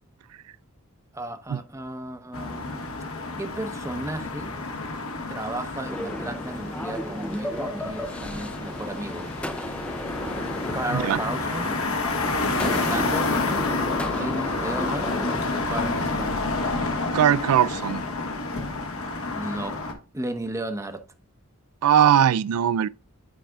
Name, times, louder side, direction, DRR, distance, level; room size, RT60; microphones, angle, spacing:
voice 1, 1.1-3.0 3.4-4.5 5.3-9.3 9.6-9.7 10.7-11.8 12.6-13.4 14.1-15.1 15.5-16.5 19.3-19.9 20.1-21.0, right 1 dB, 15° right, 0.8 m, -34 dB
sound 1, 2.3-19.9, left 3 dB, 70° left, 1.5 m, -29 dB
sound 2, 5.9-15.4, left 1 dB, 5° left, 0.5 m, -34 dB
voice 2, 17.1-18.0 21.8-22.9, right 9 dB, 80° right, 0.3 m, -20 dB
10.0 x 4.8 x 2.3 m
head